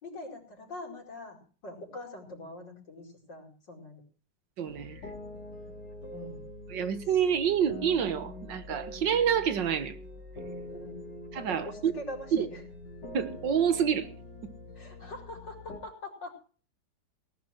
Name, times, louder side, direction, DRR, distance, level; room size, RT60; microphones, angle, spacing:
voice 1, 0.0-1.4 1.6-4.0 6.1-6.4 10.7-11.0 11.5-12.6 14.8-16.5, left 1 dB, 85° left, 1 dB, 5.4 m, -43 dB
voice 2, 4.6-5.0 6.7-10.0 11.3-11.9 12.3-12.5 13.1-14.1, right 8 dB, 85° right, 12 dB, 2.0 m, -27 dB
sound 1, 4.7-15.8, left 1 dB, 70° left, 4.0 m, -44 dB
18.5 x 11.0 x 4.5 m, 0.39 s
omnidirectional pair, 1.9 m